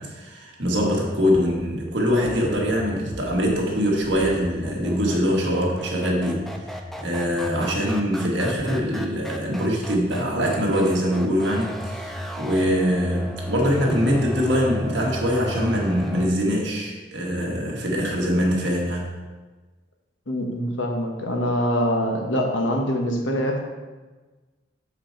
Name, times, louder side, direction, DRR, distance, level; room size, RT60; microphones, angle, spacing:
voice 1, 0.0-6.5 7.0-12.1 12.4-19.1, equal, 65° right, -2 dB, 1.6 m, -23 dB
sound 1, 0.9-16.3, equal, ahead, 0.5 m, -34 dB
voice 2, 20.3-23.6, equal, 90° left, 2 dB, 1.2 m, -24 dB
7.0 x 5.0 x 4.5 m, 1.3 s
head